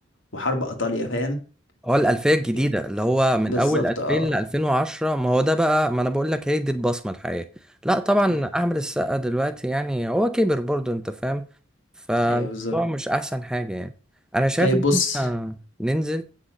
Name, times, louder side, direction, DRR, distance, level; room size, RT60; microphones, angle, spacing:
voice 1, 0.3-1.4 3.5-4.3 8.3-8.4 12.3-12.8 14.6-15.3, left 1 dB, 75° left, 2.1 m, -25 dB
voice 2, 1.8-7.5 7.8-11.5 12.1-13.9 14.3-16.2, equal, 5° right, 0.5 m, -23 dB
8.4 x 6.1 x 6.4 m
head